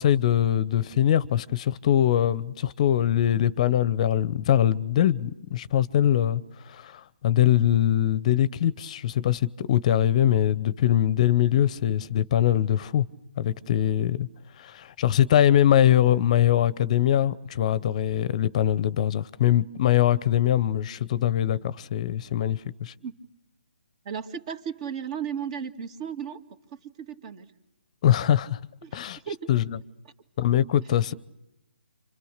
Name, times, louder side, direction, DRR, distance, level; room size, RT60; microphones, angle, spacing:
voice 1, 0.0-6.4 6.7-13.0 13.4-14.3 14.6-22.9 28.0-28.6 28.9-29.2 29.5-29.8 30.4-31.1, left 11 dB, 40° left, 0.9 m, -22 dB
voice 2, 24.0-26.4 27.0-27.5 28.8-29.0 29.3-29.5, right 7 dB, 35° right, 2.3 m, -34 dB
29.5 x 26.5 x 6.7 m
figure-of-eight pair, 145°, 6 cm